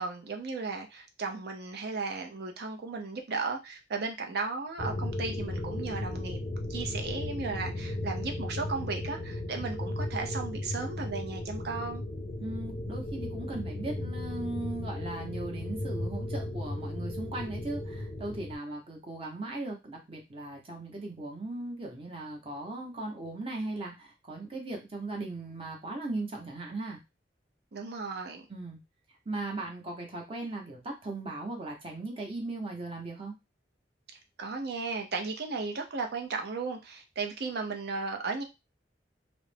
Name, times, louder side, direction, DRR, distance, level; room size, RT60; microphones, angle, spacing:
voice 1, 0.0-6.4 6.7-12.0 27.7-28.5 34.4-38.4, right 4 dB, 65° right, 0.6 m, -35 dB
sound 1, 4.8-18.6, left 1 dB, 35° left, 0.4 m, -35 dB
voice 2, 12.4-27.0 28.5-28.8 29.3-33.3, right 2 dB, 30° right, 0.8 m, -38 dB
2.4 x 2.0 x 3.2 m
head